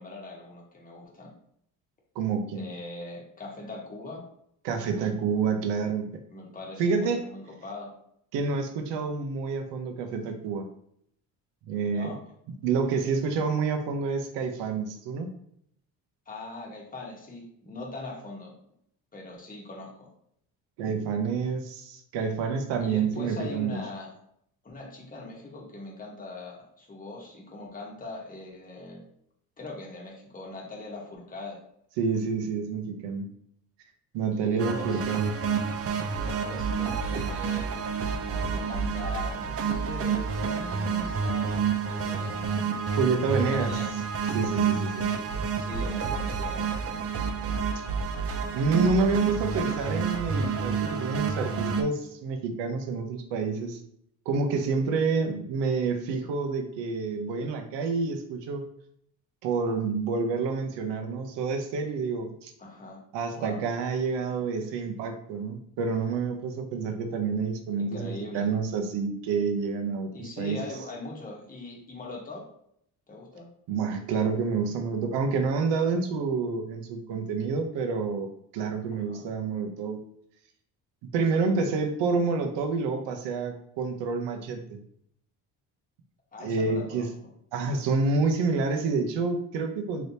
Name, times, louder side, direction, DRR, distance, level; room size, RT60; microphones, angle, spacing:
voice 1, 0.0-1.3 2.5-4.2 6.3-7.9 11.9-12.2 16.3-18.5 19.1-20.1 22.8-24.1 24.6-29.0 29.6-31.6 34.3-35.0 36.2-37.9 38.2-41.5 41.9-42.8 43.3-44.1 45.5-46.7 62.6-63.0 63.3-63.6 67.8-68.5 70.1-72.5 73.1-73.5 78.9-79.3 86.3-87.3, left 2 dB, 20° left, -2 dB, 1.0 m, -41 dB
voice 2, 2.2-2.7 4.6-6.1 6.8-7.2 8.3-10.7 11.7-12.1 12.6-15.3 20.8-23.8 32.0-33.3 34.1-35.3 42.9-43.7 44.3-45.1 48.5-53.8 54.3-58.6 59.4-62.5 63.1-70.6 73.7-80.0 81.1-84.8 86.4-87.1 87.5-90.1, right 4 dB, 80° right, 5 dB, 0.7 m, -28 dB
sound 1, 34.6-51.8, right 6 dB, 35° right, 0.4 m, -29 dB
3.4 x 2.9 x 2.7 m, 0.69 s
cardioid pair, 100°, 42 cm